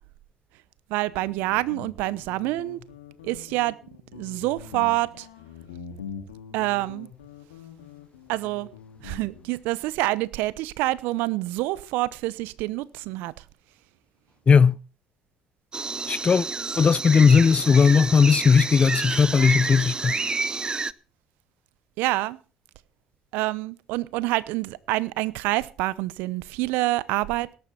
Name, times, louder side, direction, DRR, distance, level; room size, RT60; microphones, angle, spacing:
voice 1, 0.9-2.8 3.2-3.8 4.1-5.3 6.5-7.1 8.3-8.7 9.0-13.3 22.0-22.4 23.3-27.6, right 19 dB, 70° right, 0.8 m, -27 dB
Guitar, 1.1-9.5, left 6 dB, 90° left, 2.6 m, -43 dB
voice 2, 14.5-14.8 16.1-16.5 16.8-20.2, left 6 dB, 35° left, 0.7 m, -17 dB
sound 1, 15.7-20.9, right 4 dB, 25° right, 0.7 m, -29 dB
18.0 x 10.5 x 4.5 m
hypercardioid pair, 60°, 3 cm